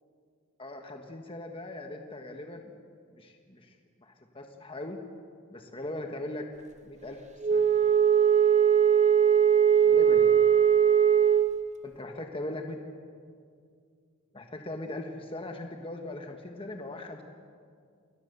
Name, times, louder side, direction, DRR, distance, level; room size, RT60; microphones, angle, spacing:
voice 1, 0.6-2.8 3.1-5.0 5.5-6.5 6.8-7.7 9.8-10.4 11.8-12.8 14.3-17.2, left 1 dB, 25° left, 3 dB, 1.4 m, -39 dB
Wind instrument woodwind instrument, 7.4-11.6, right 8 dB, 30° right, 0.7 m, -20 dB
28.5 x 21.5 x 6.9 m, 2.2 s
head